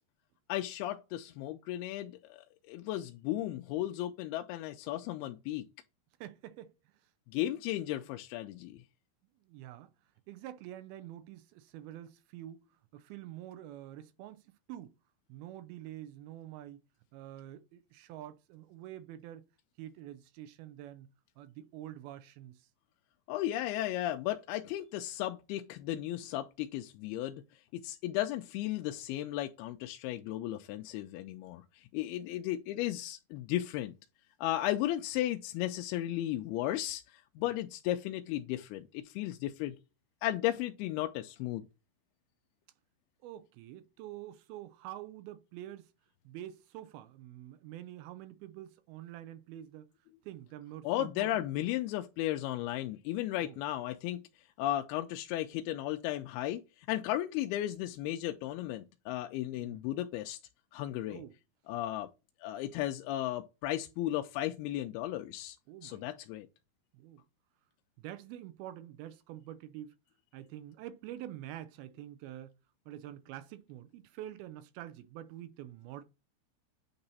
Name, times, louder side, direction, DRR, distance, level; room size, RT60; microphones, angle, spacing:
voice 1, 0.5-5.6 7.3-8.8 23.3-27.4 27.7-33.9 34.4-39.8 40.2-41.6 50.8-54.2 54.6-60.4 60.7-61.2 61.7-62.1 62.4-65.6 65.8-66.5, left 14 dB, 80° left, 2.4 m, -35 dB
voice 2, 6.2-6.7 9.5-9.9 10.3-12.7 12.9-14.9 15.3-16.8 17.1-19.4 19.8-21.1 21.4-22.7 43.2-45.9 46.3-49.9 50.2-51.5 53.4-53.6 59.6-59.8 61.1-61.3 65.7-66.0 66.9-67.2 68.0-69.9 70.3-72.5 72.9-76.0, right 12 dB, 80° right, 2.4 m, -47 dB
8.7 x 2.9 x 4.0 m
omnidirectional pair, 4.7 m